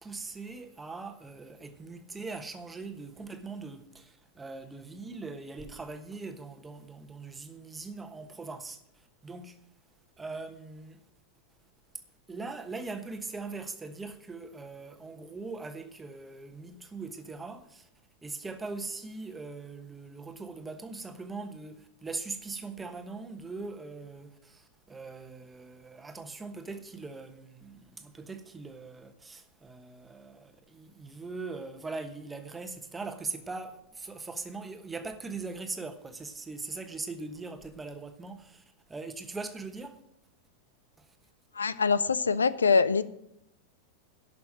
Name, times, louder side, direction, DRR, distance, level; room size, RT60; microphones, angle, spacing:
voice 1, 0.0-9.6 10.2-11.0 12.3-17.9 18.2-40.0 41.0-41.1, right 3 dB, 10° right, 1.2 m, -41 dB
voice 2, 41.6-43.0, left 5 dB, 75° left, 0.5 m, -24 dB
11.5 x 6.0 x 8.6 m
figure-of-eight pair, 90°, 0 cm